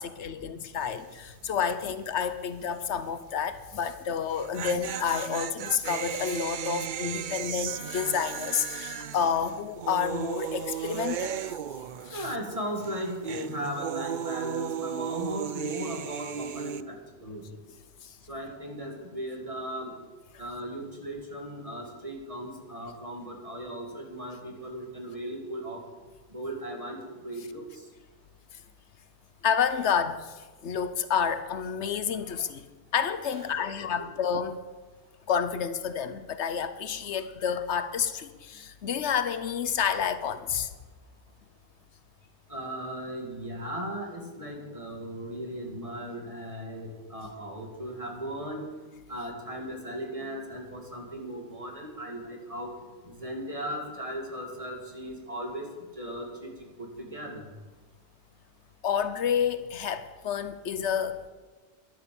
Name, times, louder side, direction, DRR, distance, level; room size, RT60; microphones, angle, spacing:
voice 1, 0.0-11.4 12.1-12.2 29.4-30.3 30.6-32.6 32.9-34.6 35.3-40.7 58.8-61.3, left 7 dB, 80° left, 12 dB, 1.1 m, -29 dB
sound 1, 0.8-1.2 1.4-1.5 4.2-12.5 12.8-16.8, right 9 dB, 55° right, 0.6 m, -35 dB
voice 2, 12.1-17.4 18.3-19.9 20.4-25.8 26.3-27.8 33.3-34.1 42.5-48.7 49.1-52.7 53.0-55.7 56.0-56.5 56.8-57.5, right 1 dB, 30° right, 1 dB, 2.6 m, -37 dB
12.5 x 11.0 x 7.0 m, 1.3 s
omnidirectional pair, 1.1 m